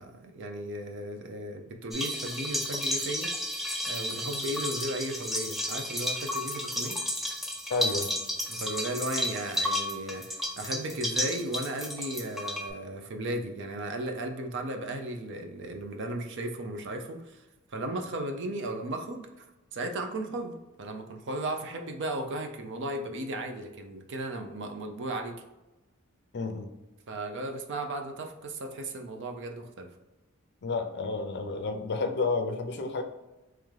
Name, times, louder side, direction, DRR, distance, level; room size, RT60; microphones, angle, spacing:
voice 1, 0.0-3.3 3.9-7.0 8.5-17.4 17.7-19.5 19.7-25.4 27.1-29.9, right 1 dB, 55° right, 4 dB, 0.6 m, -35 dB
sound 1, 1.9-12.7, left 1 dB, ahead, 0.5 m, -32 dB
voice 2, 7.7-8.1 26.3-26.7 30.6-33.0, left 3 dB, 50° left, 5 dB, 0.6 m, -30 dB
3.7 x 3.2 x 3.2 m, 1.0 s
head